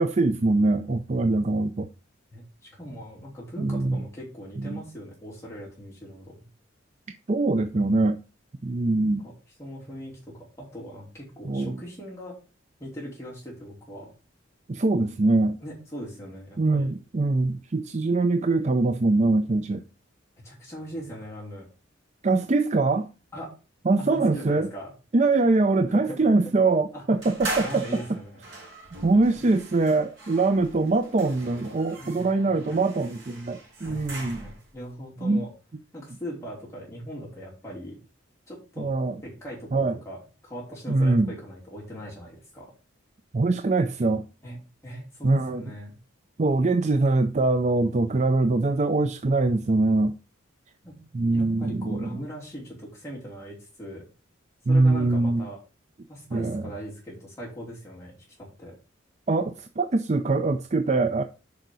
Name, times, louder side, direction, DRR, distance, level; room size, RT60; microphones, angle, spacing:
voice 1, 0.0-1.9 3.6-4.0 4.6-4.8 7.3-8.2 8.6-9.3 11.4-11.8 14.7-15.6 16.6-19.8 22.2-23.1 23.9-24.7 25.1-28.0 29.0-34.5 35.2-35.4 38.8-39.1 39.7-40.0 40.9-41.3 43.3-44.2 45.2-45.6 46.4-50.1 51.1-52.2 54.7-55.4 56.3-56.6 59.3-61.2, right 3 dB, 35° right, 0.4 m, -23 dB
voice 2, 2.3-6.4 9.2-9.3 9.6-12.3 12.8-14.1 15.6-16.9 20.4-21.6 23.3-23.5 24.0-24.9 25.9-26.4 26.9-27.0 27.6-28.4 32.0-32.8 33.8-35.5 35.9-38.0 38.5-39.0 39.2-40.2 40.4-42.7 44.4-45.9 50.8-51.0 51.3-54.0 54.7-55.6 56.1-58.7, equal, 15° left, 3.0 m, -40 dB
sound 1, 27.2-34.7, right 2 dB, 65° right, 4.0 m, -39 dB
6.7 x 5.0 x 6.1 m
head